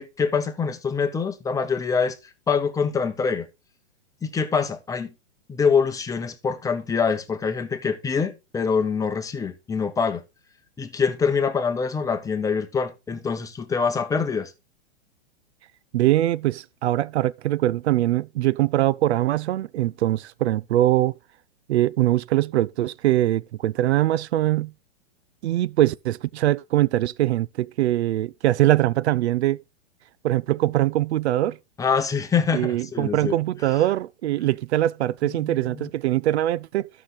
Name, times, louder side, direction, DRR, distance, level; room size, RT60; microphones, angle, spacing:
voice 1, 0.0-2.2 2.5-3.5 4.2-5.1 5.5-10.2 10.8-14.5 31.8-33.4 33.6-33.8 35.2-35.9, left 5 dB, 10° left, 0.9 m, -25 dB
voice 2, 15.9-21.1 21.7-24.7 25.4-29.6 30.2-31.6 32.5-36.9, right 14 dB, 75° right, 0.5 m, -22 dB
13.0 x 5.9 x 3.2 m
hypercardioid pair, 130°, 33 cm